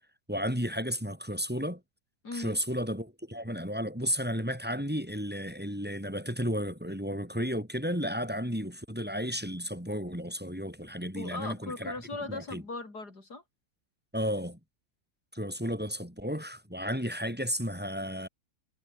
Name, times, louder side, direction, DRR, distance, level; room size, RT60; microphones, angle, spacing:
voice 1, 0.3-1.8 2.3-12.0 12.3-12.6 14.1-14.6 15.3-18.3, equal, 5° right, 4.2 m, -33 dB
voice 2, 2.2-2.6 11.1-13.4, left 3 dB, 70° left, 5.8 m, -38 dB
omnidirectional pair, 1.8 m